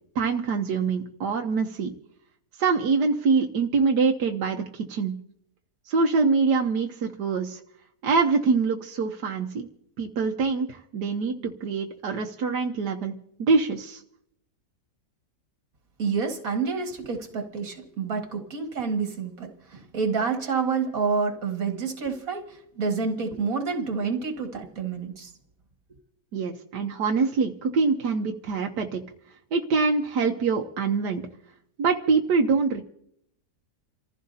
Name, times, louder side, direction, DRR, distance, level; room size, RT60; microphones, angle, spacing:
voice 1, 0.1-1.9 2.6-5.1 5.9-7.6 8.0-9.7 10.0-13.1 13.5-14.0 26.3-29.0 29.5-31.2 31.8-32.8, right 4 dB, 85° right, 3 dB, 1.5 m, -24 dB
voice 2, 16.0-22.4 22.8-25.3, right 5 dB, 60° right, 4 dB, 2.3 m, -28 dB
29.0 x 15.0 x 2.8 m, 0.72 s
omnidirectional pair, 1.7 m